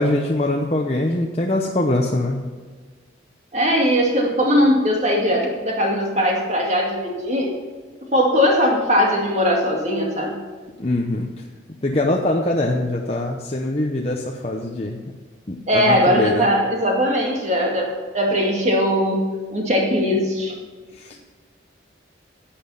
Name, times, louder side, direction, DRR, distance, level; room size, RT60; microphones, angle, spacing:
voice 1, 0.0-2.4 10.8-11.3 11.8-15.0 15.5-16.5 21.0-21.2, left 1 dB, 30° left, 0 dB, 0.8 m, -22 dB
voice 2, 3.5-7.5 8.1-10.4 15.7-20.6, equal, 35° right, 0 dB, 2.3 m, -20 dB
11.0 x 8.6 x 5.8 m, 1.5 s
head